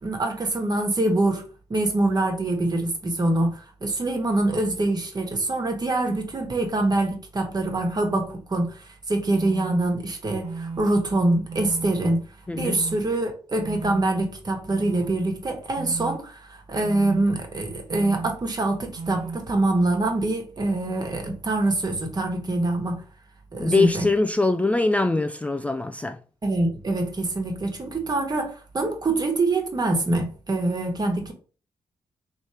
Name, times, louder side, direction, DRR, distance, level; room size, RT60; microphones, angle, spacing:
voice 1, 0.0-1.4 1.7-12.3 12.6-23.0 23.5-24.1 26.4-31.3, right 2 dB, 40° right, 1.4 m, -25 dB
sound 1, 9.4-9.8 10.4-10.8 11.5-11.9 12.6-13.0 13.6-14.0 14.7-15.1 15.8-16.2 16.8-17.2 17.9-18.3 19.0-19.4, right 4 dB, 70° right, 0.5 m, -34 dB
voice 2, 12.5-12.8 23.6-26.2, left 3 dB, 10° left, 0.4 m, -22 dB
3.3 x 3.1 x 4.3 m
cardioid pair, 65°, 11 cm